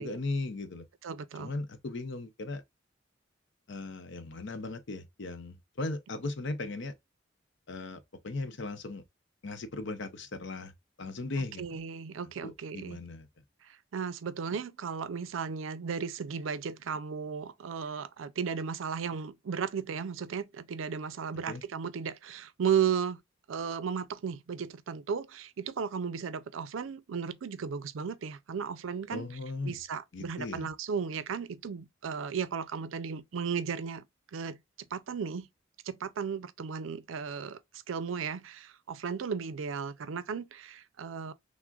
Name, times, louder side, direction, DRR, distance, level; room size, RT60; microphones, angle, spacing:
voice 1, 0.0-0.9 1.4-2.6 3.7-6.9 7.7-9.0 9.4-10.7 11.0-11.6 12.4-13.3 21.5-21.6 29.1-29.8 30.1-30.7, left 2 dB, 65° left, 0.6 m, -37 dB
voice 2, 1.0-1.5 11.6-13.0 13.9-23.2 23.5-29.3 29.6-34.0 34.3-34.6 34.9-35.5 35.9-37.6 37.9-41.3, right 6 dB, 90° right, 0.4 m, -35 dB
5.9 x 2.1 x 2.3 m
head